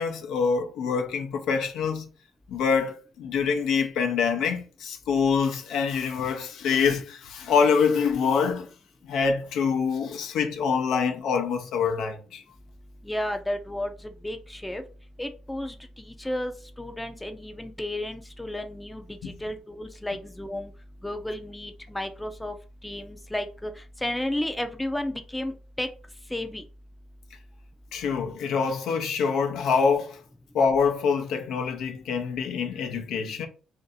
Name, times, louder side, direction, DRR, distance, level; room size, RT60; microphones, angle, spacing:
voice 1, 0.0-2.1 2.5-8.7 9.0-12.4 19.2-19.3 27.9-30.2 30.5-33.5, left 5 dB, 80° left, 0.6 m, -25 dB
voice 2, 13.0-14.8 15.2-16.5 16.8-20.7 21.0-22.6 22.8-23.7 24.0-25.9 26.3-26.6, left 1 dB, 10° left, 0.5 m, -32 dB
2.7 x 2.5 x 3.9 m
cardioid pair, 90°, 0 cm